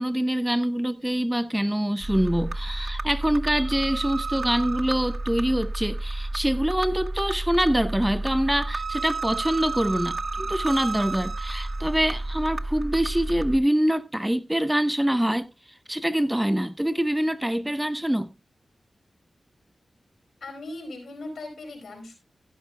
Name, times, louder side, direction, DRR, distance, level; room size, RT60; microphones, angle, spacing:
voice 1, 0.0-15.5 15.9-18.3, equal, 10° right, 0.8 m, -25 dB
sound 1, 2.0-13.6, right 2 dB, 50° right, 0.9 m, -31 dB
voice 2, 20.4-22.1, left 2 dB, 80° left, 4.8 m, -38 dB
15.0 x 11.5 x 2.3 m
cardioid pair, 45°, 0 cm